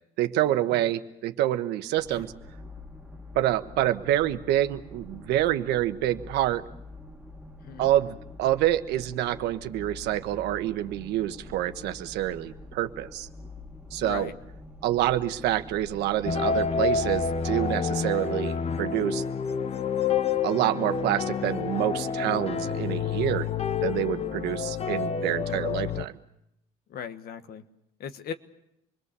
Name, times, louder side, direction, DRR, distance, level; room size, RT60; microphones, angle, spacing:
voice 1, 0.2-2.3 3.3-6.6 7.8-13.3 13.9-14.3 14.8-19.2 20.4-23.5 23.8-26.1, right 13 dB, 85° right, 9 dB, 1.2 m, -27 dB
sound 1, 1.9-17.6, left 2 dB, 5° right, 2.3 m, -46 dB
voice 2, 14.0-14.3 26.9-27.6 28.0-28.3, left 7 dB, 65° left, 10 dB, 1.5 m, -38 dB
sound 2, 16.3-26.1, left 6 dB, 35° left, 0.9 m, -28 dB
27.0 x 21.5 x 6.9 m, 0.81 s
cardioid pair, 110°, 17 cm